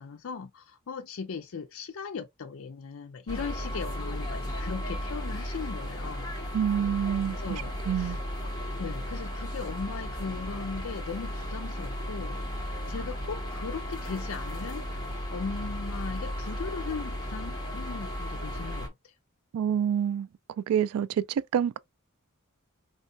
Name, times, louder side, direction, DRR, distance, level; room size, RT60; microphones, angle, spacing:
voice 1, 0.0-6.3 6.8-7.0 7.3-8.2 8.8-19.1, left 5 dB, 65° left, 0.5 m, -38 dB
sound 1, 3.3-18.9, equal, 20° left, 1.6 m, -35 dB
voice 2, 6.5-7.4 7.9-8.2 19.5-20.3 20.7-21.8, right 8 dB, 80° right, 0.3 m, -27 dB
4.4 x 3.1 x 2.6 m
head